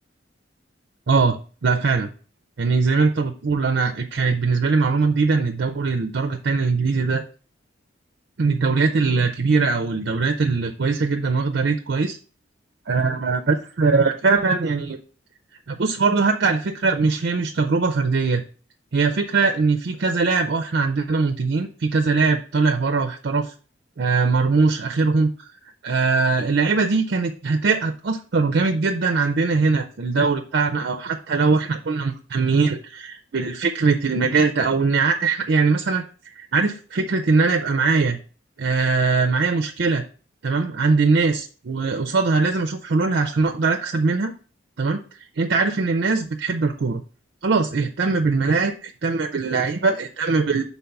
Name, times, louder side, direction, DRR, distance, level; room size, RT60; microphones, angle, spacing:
voice 1, 1.1-2.1 2.6-7.2 8.4-12.2 12.9-15.0 15.7-18.4 18.9-23.5 24.0-25.3 25.8-36.0 36.4-38.2 38.6-40.0 40.4-44.3 44.8-45.0 45.4-47.0 47.4-50.6, right 4 dB, 60° right, 6 dB, 0.5 m, -21 dB
5.4 x 4.1 x 5.7 m, 0.40 s
head